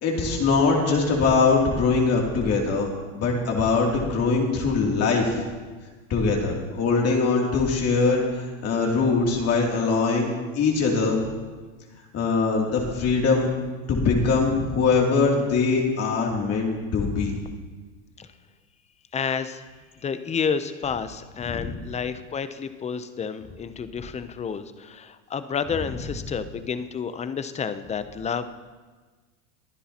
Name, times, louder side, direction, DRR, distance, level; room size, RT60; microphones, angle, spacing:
voice 1, 0.0-2.9 3.1-5.4 6.1-10.3 10.5-11.3 12.1-13.5 13.9-17.3 21.5-21.7, left 4 dB, 40° left, -1 dB, 2.8 m, -22 dB
voice 2, 19.1-19.6 20.0-28.5, left 6 dB, 15° left, 12 dB, 0.6 m, -30 dB
22.5 x 9.9 x 2.9 m, 1.4 s
supercardioid pair, 115°, 40 cm